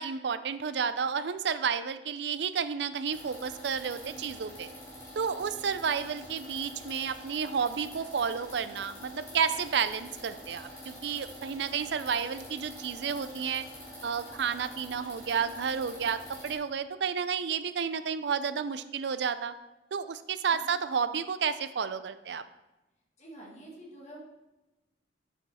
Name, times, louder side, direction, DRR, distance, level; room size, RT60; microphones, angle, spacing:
voice 1, 0.0-4.7 5.2-13.6 14.0-19.5 19.9-22.4, right 6 dB, 65° right, 13 dB, 0.4 m, -31 dB
sound 1, 3.1-16.6, equal, 20° left, 3.0 m, -46 dB
voice 2, 4.0-4.4 20.5-20.7 23.2-24.2, right 1 dB, 40° left, -3 dB, 1.8 m, -48 dB
7.2 x 6.8 x 4.2 m, 1.0 s
head